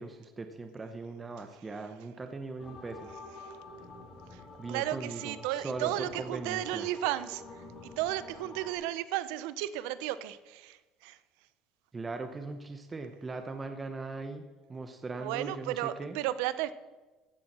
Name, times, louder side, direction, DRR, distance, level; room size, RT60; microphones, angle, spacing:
voice 1, 0.0-3.1 4.6-6.9 11.9-16.2, right 3 dB, 15° right, 6 dB, 0.7 m, -40 dB
sound 1, 2.6-8.7, left 2 dB, 30° left, 2.4 m, -48 dB
voice 2, 4.7-7.4 8.0-10.8 11.0-11.2 15.2-16.7, right 14 dB, 90° right, 15 dB, 0.6 m, -33 dB
15.0 x 7.0 x 6.0 m, 1.2 s
cardioid pair, 165°, 0 cm